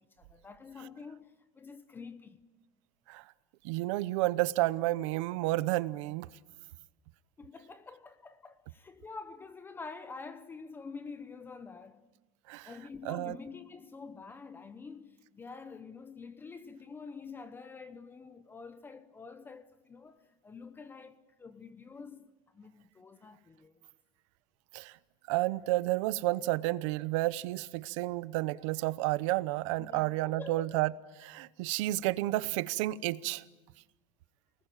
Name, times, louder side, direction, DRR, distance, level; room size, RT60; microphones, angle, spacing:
voice 1, 0.0-2.4 7.4-12.0 12.6-22.3 22.5-23.9 29.8-30.8, left 4 dB, 15° left, 0.8 m, -47 dB
voice 2, 3.6-6.3 12.5-12.7 13.0-13.4 24.7-25.0 25.3-30.9 31.2-33.4, right 18 dB, 80° right, 0.9 m, -31 dB
28.5 x 20.0 x 9.0 m
cardioid pair, 165°, 16 cm